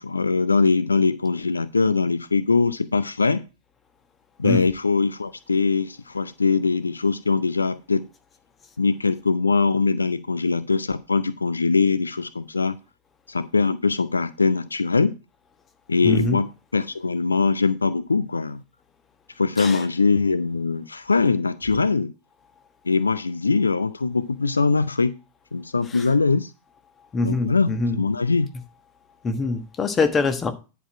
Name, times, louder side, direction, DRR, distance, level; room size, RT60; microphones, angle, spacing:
voice 1, 0.0-3.4 4.4-8.1 8.8-12.8 13.3-15.2 15.9-18.6 19.4-22.1 22.9-25.2 25.5-26.5 27.2-28.5, left 4 dB, 75° left, 16 dB, 0.3 m, -22 dB
voice 2, 16.0-16.4 19.6-19.8 27.1-28.0 29.2-30.5, left 3 dB, 20° left, 8 dB, 1.2 m, -23 dB
10.0 x 4.5 x 4.8 m, 0.31 s
figure-of-eight pair, 90°, 0 cm